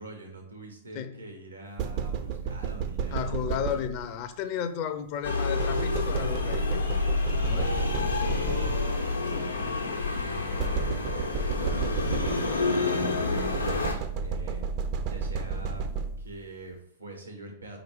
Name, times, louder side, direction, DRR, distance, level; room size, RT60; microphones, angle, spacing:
voice 1, 0.0-3.8 7.5-9.8 10.1-11.1 11.4-14.6 15.0-15.9 16.2-17.8, right 2 dB, 85° right, 1.7 m, -43 dB
sound 1, 1.8-4.2 5.6-9.2 10.6-12.8 13.4-16.4, right 6 dB, 45° right, 0.6 m, -32 dB
voice 2, 3.1-6.9 7.4-7.7, left 8 dB, 45° left, 0.7 m, -33 dB
sound 2, 5.2-13.9, left 3 dB, 90° left, 1.2 m, -28 dB
5.1 x 4.7 x 4.6 m
figure-of-eight pair, 100°, 0 cm